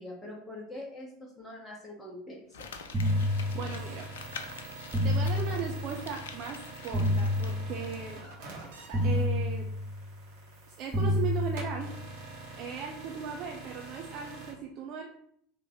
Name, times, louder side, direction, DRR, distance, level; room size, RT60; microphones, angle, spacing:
voice 1, 0.0-2.7, left 1 dB, 15° left, -3 dB, 0.9 m, -44 dB
Crumpling crinkling, 2.5-8.3 8.6-8.7, left 6 dB, 65° left, 0.4 m, -47 dB
sound 1, 2.9-4.1 4.9-6.1 6.9-8.1 8.9-10.1 10.9-12.1, left 1 dB, 15° right, 1.1 m, -29 dB
sound 2, 3.0-14.5, right 3 dB, 60° right, 1.4 m, -46 dB
voice 2, 3.5-4.1 5.0-8.2 8.6-8.7 9.0-9.7 10.7-11.9 12.6-15.1, right 7 dB, 45° right, 1 dB, 0.5 m, -37 dB
3.7 x 2.8 x 3.9 m, 0.67 s
figure-of-eight pair, 75°, 0 cm